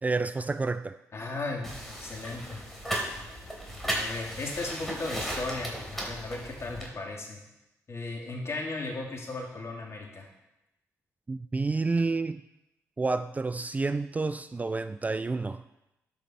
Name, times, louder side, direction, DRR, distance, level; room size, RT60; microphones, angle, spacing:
voice 1, 0.0-1.0 11.3-12.4 13.0-15.6, right 3 dB, 25° right, 12 dB, 0.3 m, -29 dB
voice 2, 1.1-2.6 3.9-7.4 7.9-10.3, left 2 dB, 45° left, 0 dB, 2.4 m, -36 dB
sound 1, 1.6-6.9, equal, 5° left, 3.0 m, -36 dB
12.5 x 5.2 x 4.3 m, 0.93 s
supercardioid pair, 60°, 7 cm